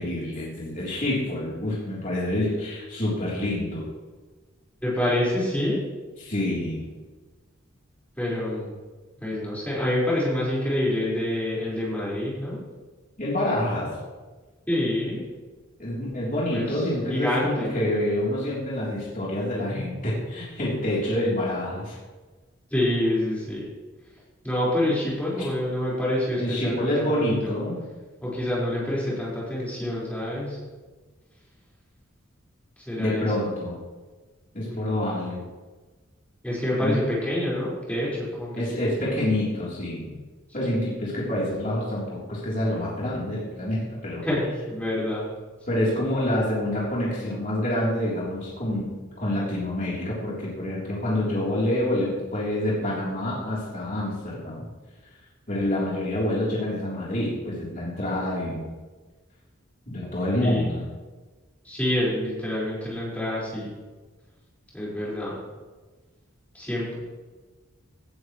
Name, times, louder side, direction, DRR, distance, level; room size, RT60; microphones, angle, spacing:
voice 1, 0.0-3.9 6.2-6.9 13.2-13.9 15.8-22.0 26.4-27.8 33.0-33.8 34.5-35.4 36.8-37.0 38.6-40.1 40.5-44.2 45.7-54.7 55.5-58.6 59.9-60.8, left 1 dB, 40° left, -6 dB, 3.5 m, -27 dB
voice 2, 4.8-5.8 8.2-8.7 9.2-12.6 14.7-15.2 16.5-16.7 17.1-17.7 22.7-23.6 24.4-27.5 28.2-30.6 32.9-33.5 34.6-35.0 36.4-38.9 40.6-40.7 44.2-45.3 60.4-60.7 61.6-63.7 64.7-65.4 66.5-67.0, left 1 dB, 5° left, -7 dB, 4.9 m, -27 dB
17.5 x 11.0 x 3.2 m, 1.3 s
head